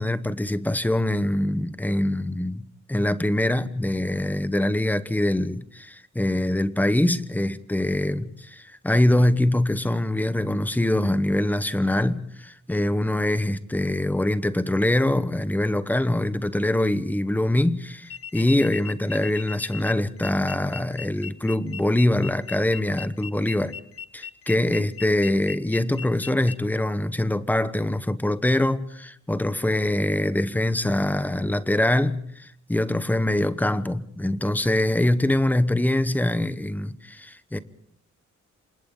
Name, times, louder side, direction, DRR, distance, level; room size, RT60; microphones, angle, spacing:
voice 1, 0.0-23.7 24.1-37.6, left 1 dB, 5° left, 1.0 m, -24 dB
sound 1, 18.0-26.6, left 8 dB, 50° left, 1.2 m, -39 dB
28.0 x 27.5 x 3.8 m
wide cardioid pair, 175°, 30 cm